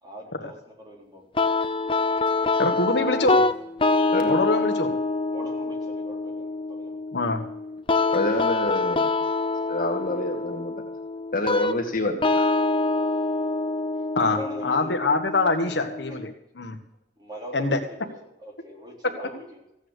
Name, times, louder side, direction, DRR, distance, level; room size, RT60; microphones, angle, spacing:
voice 1, 0.0-1.3 3.1-3.3 5.3-7.0 14.2-15.0 15.6-15.7 16.1-16.2 17.2-17.7 18.0-19.6, left 1 dB, 25° right, -2 dB, 3.8 m, -42 dB
sound 1, 1.4-16.3, left 3 dB, 30° left, 0.6 m, -26 dB
voice 2, 2.6-3.4 4.2-5.0 7.1-7.4 14.1-16.3 16.6-16.8 17.5-17.8, left 3 dB, 75° left, 5 dB, 1.4 m, -24 dB
voice 3, 8.1-9.1 9.7-10.7 11.3-12.5, left 2 dB, 50° left, 2 dB, 2.2 m, -27 dB
15.5 x 8.8 x 6.4 m, 0.84 s
head